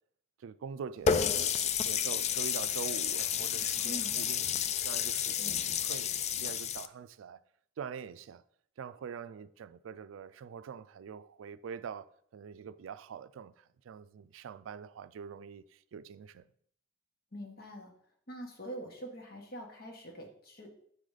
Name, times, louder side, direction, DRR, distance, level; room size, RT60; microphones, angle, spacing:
voice 1, 0.4-1.5 1.8-5.4 5.6-7.4 7.8-8.4 8.8-16.5, right 7 dB, 90° right, 0.3 m, -44 dB
Water tap faucet, 1.1-6.9, left 8 dB, 35° left, 0.3 m, -31 dB
voice 2, 3.8-4.1 5.4-5.7 17.3-17.9 18.3-20.8, right 1 dB, 50° left, 1.4 m, -44 dB
7.2 x 4.0 x 4.8 m
head